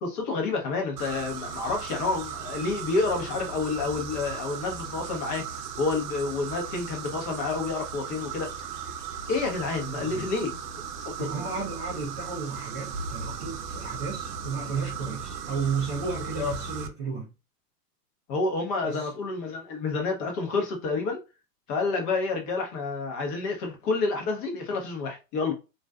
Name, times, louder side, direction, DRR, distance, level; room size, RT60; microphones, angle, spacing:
voice 1, 0.0-5.5 5.8-8.5 9.3-10.6 11.0-11.3 16.4-16.5 18.3-21.2 21.7-25.5, left 3 dB, 35° left, 0.8 m, -29 dB
sound 1, 1.0-16.9, right 6 dB, 80° right, 0.6 m, -37 dB
voice 2, 9.9-10.3 11.2-17.3 18.8-19.1, right 5 dB, 20° right, 0.3 m, -33 dB
2.4 x 2.2 x 2.3 m
hypercardioid pair, 125°, 47 cm